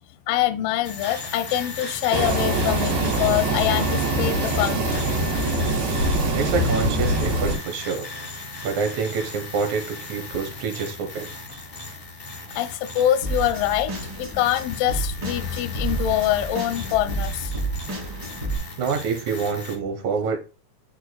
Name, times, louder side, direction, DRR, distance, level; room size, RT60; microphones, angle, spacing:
voice 1, 0.3-5.0 12.6-13.9 14.2-17.5 19.7-19.8, left 12 dB, 80° left, 2.1 m, -24 dB
sound 1, 0.8-19.8, left 3 dB, 55° left, 0.6 m, -37 dB
sound 2, 2.1-7.6, right 1 dB, 85° right, 3.4 m, -23 dB
voice 2, 6.4-8.1 8.6-11.3 18.8-20.4, right 5 dB, 65° right, 2.0 m, -27 dB
sound 3, 13.2-18.6, right 3 dB, 30° right, 2.3 m, -30 dB
9.3 x 4.7 x 2.2 m
omnidirectional pair, 4.2 m